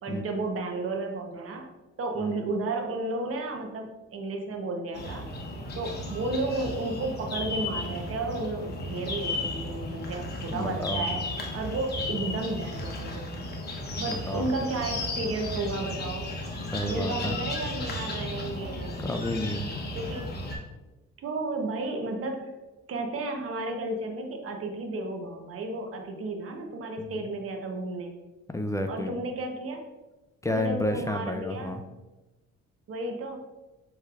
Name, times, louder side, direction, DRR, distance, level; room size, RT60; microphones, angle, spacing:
voice 1, 0.0-1.7 2.0-5.3 5.8-11.2 11.5-13.4 14.0-16.3 16.8-19.0 19.9-20.3 21.2-22.5 22.9-28.1 28.9-29.9 30.5-31.8 32.9-33.4, right 2 dB, 50° right, 3 dB, 0.8 m, -33 dB
sound 1, 4.9-20.6, left 2 dB, 35° left, 0.9 m, -34 dB
voice 2, 10.5-11.1 14.1-14.5 16.7-17.4 19.0-19.8 27.0-27.1 28.5-29.2 30.4-31.8, left 1 dB, 10° left, 5 dB, 0.3 m, -31 dB
6.4 x 3.2 x 2.4 m, 1.1 s
cardioid pair, 90°, 30 cm